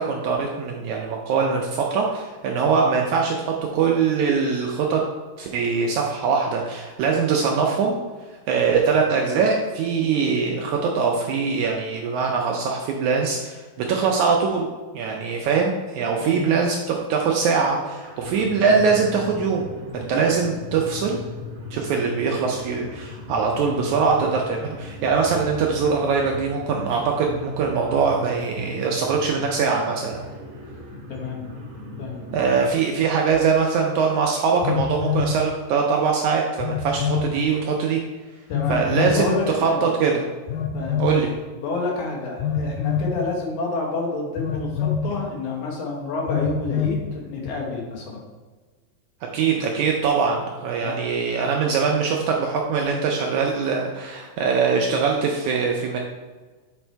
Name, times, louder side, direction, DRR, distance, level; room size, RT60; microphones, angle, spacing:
voice 1, 0.0-5.0 5.4-8.0 8.5-14.7 14.9-19.7 19.9-21.2 21.7-30.2 32.3-38.0 38.7-40.2 41.0-41.3 49.3-56.0, right 5 dB, 80° right, 0 dB, 1.8 m, -22 dB
voice 2, 16.2-16.6 31.1-31.5 32.0-32.2 38.5-39.9 40.7-41.0 41.6-48.2 50.8-51.0, left 3 dB, 65° left, -2 dB, 2.4 m, -29 dB
sound 1, 18.0-32.7, left 2 dB, 55° right, 2.3 m, -38 dB
Telephone, 33.3-33.4 34.6-35.4 36.6-37.3 38.5-39.2 40.5-41.2 42.4-43.1 44.4-45.1 46.3-47.0, left 7 dB, 90° left, 2.3 m, -25 dB
7.1 x 4.2 x 4.5 m, 1.3 s
omnidirectional pair, 3.9 m